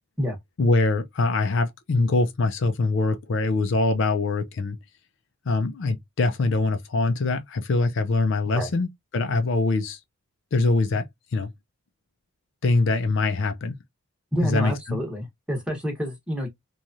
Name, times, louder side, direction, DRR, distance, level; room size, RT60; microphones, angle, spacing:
voice 1, 0.6-4.8 5.5-8.9 9.1-10.0 10.5-11.1 11.3-11.5 12.6-13.7 14.5-14.7, left 3 dB, 55° left, 0.4 m, -23 dB
voice 2, 14.3-16.5, equal, 5° right, 1.0 m, -28 dB
3.0 x 2.3 x 2.5 m
head